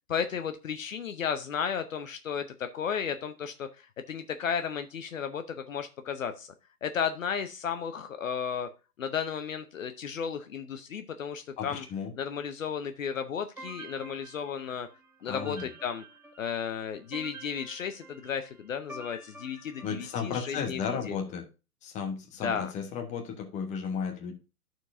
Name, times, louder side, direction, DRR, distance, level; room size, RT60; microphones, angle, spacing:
voice 1, 0.1-6.5 6.8-8.7 9.0-11.9 12.2-14.9 15.2-16.0 16.4-21.2 22.4-22.7, left 7 dB, 60° left, 9 dB, 0.8 m, -34 dB
voice 2, 11.6-12.1 15.2-15.7 19.8-21.4 21.8-24.3, left 6 dB, 15° left, 3 dB, 1.2 m, -34 dB
sound 1, 13.6-20.5, right 2 dB, 5° right, 2.0 m, -48 dB
13.0 x 4.5 x 2.6 m, 0.30 s
figure-of-eight pair, 125°, 46 cm